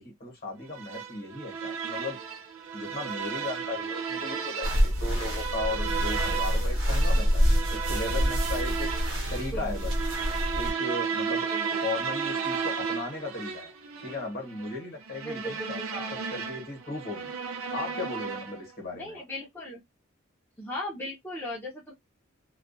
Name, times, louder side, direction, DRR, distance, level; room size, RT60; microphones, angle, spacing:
voice 1, 0.0-2.2 2.7-8.9 9.3-9.9 10.6-11.5 11.8-13.7 14.0-17.3 17.7-19.2, left 2 dB, 45° left, 1.0 m, -36 dB
sound 1, 0.7-18.7, right 6 dB, 80° right, 0.5 m, -34 dB
sound 2, 4.6-10.7, equal, 65° right, 0.8 m, -26 dB
voice 2, 11.5-11.8 15.3-16.1 18.9-19.8 20.6-21.9, left 1 dB, 10° left, 0.5 m, -37 dB
2.3 x 2.2 x 2.5 m
head